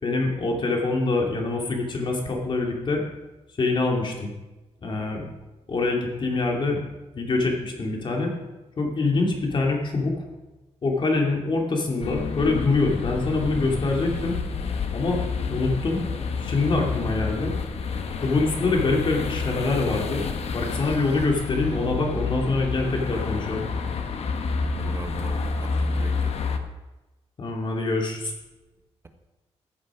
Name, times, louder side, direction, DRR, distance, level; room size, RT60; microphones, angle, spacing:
voice 1, 0.0-3.0 3.6-4.3 4.8-5.3 5.7-6.8 7.1-8.3 8.8-10.1 10.8-14.4 14.9-15.2 15.5-16.0 16.3-17.5 18.2-20.2 20.5-23.7 27.4-28.3, left 3 dB, 45° left, 0 dB, 2.8 m, -25 dB
sound 1, 12.0-26.6, left 4 dB, 65° left, 1.2 m, -29 dB
voice 2, 24.7-26.4, right 2 dB, 25° right, 6 dB, 1.3 m, -41 dB
14.5 x 8.4 x 5.0 m, 1.1 s
cardioid pair, 120°, 11 cm